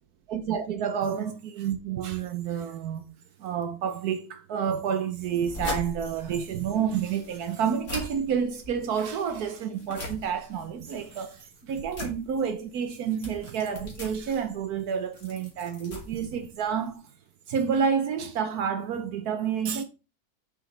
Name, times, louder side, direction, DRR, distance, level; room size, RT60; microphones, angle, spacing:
voice 1, 0.3-3.0 3.4-17.0 17.5-19.8, right 7 dB, 80° right, 1.3 m, -29 dB
sound 1, 5.2-16.9, left 1 dB, 50° left, 2.6 m, -41 dB
7.8 x 7.1 x 3.3 m
omnidirectional pair, 1.6 m